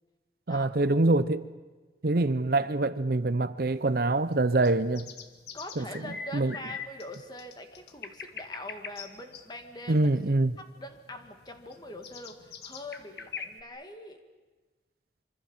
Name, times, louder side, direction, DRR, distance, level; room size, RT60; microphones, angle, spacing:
voice 1, 0.5-1.4 2.0-5.1 5.8-5.9 6.3-6.5 9.9-10.5, right 2 dB, 55° right, 0.7 m, -25 dB
sound 1, 3.6-13.6, left 6 dB, 65° left, 1.7 m, -44 dB
voice 2, 5.5-10.1 10.6-14.2, left 1 dB, 25° left, 2.2 m, -43 dB
26.0 x 24.5 x 7.3 m
head